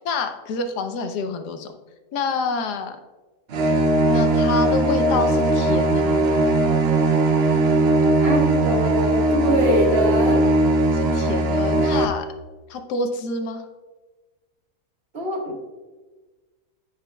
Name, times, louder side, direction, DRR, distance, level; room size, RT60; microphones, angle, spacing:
voice 1, 0.0-1.7 2.1-3.0 4.1-6.3 10.9-12.3 12.7-13.6, left 3 dB, 80° left, 7 dB, 1.3 m, -27 dB
sound 1, 3.5-12.0, right 2 dB, 65° right, 0.6 m, -19 dB
voice 2, 8.2-10.4 15.1-15.7, right 1 dB, 40° right, -1 dB, 1.7 m, -23 dB
15.0 x 5.2 x 2.3 m, 1.3 s
omnidirectional pair, 1.7 m